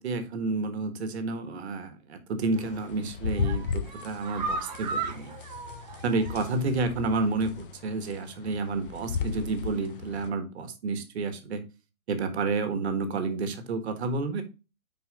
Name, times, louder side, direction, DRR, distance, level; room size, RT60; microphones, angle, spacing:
voice 1, 0.0-5.3 6.0-11.6 12.1-14.4, right 3 dB, 45° right, 9 dB, 1.4 m, -30 dB
sound 1, 2.5-2.9 3.3-6.7 7.0-7.1 7.5-7.6, right 4 dB, 30° right, 0.8 m, -36 dB
sound 2, 2.6-10.3, left 6 dB, 40° left, 0.6 m, -36 dB
6.4 x 4.7 x 3.9 m, 0.30 s
hypercardioid pair, 155°, 44 cm